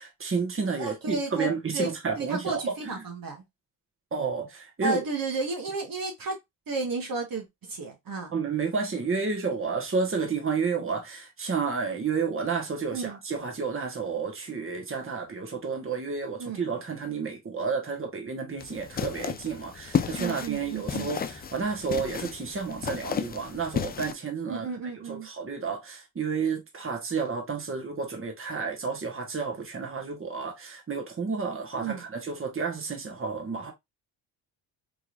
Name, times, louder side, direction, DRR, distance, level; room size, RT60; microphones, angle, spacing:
voice 1, 0.0-3.0 4.1-5.0 8.3-24.7 25.1-33.7, right 5 dB, 30° right, 1.3 m, -31 dB
voice 2, 0.8-3.4 4.8-6.4 6.7-8.3 12.9-13.2 16.4-16.7 20.2-21.1 24.5-25.3 31.8-32.0, right 4 dB, 50° right, 1.3 m, -33 dB
sound 1, 18.6-24.1, left 7 dB, 25° left, 0.3 m, -33 dB
3.6 x 3.1 x 2.4 m
supercardioid pair, 60°, 45 cm